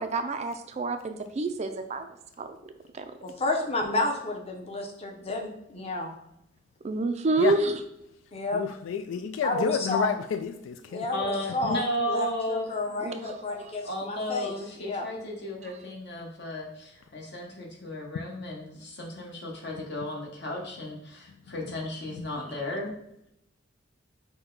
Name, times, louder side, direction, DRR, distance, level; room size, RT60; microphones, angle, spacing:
voice 1, 0.0-2.1 2.4-2.5 3.0-3.1 6.8-7.8 13.0-13.4, right 2 dB, 35° right, 0.3 m, -28 dB
voice 2, 3.2-6.1 8.3-8.6 9.4-10.1 10.9-14.5 14.8-15.0, left 2 dB, 30° left, 0.8 m, -31 dB
voice 3, 8.5-11.1, left 7 dB, 85° left, 0.3 m, -30 dB
voice 4, 11.1-12.7 13.8-22.9, left 1 dB, 60° left, 1.1 m, -34 dB
5.9 x 2.2 x 3.9 m
head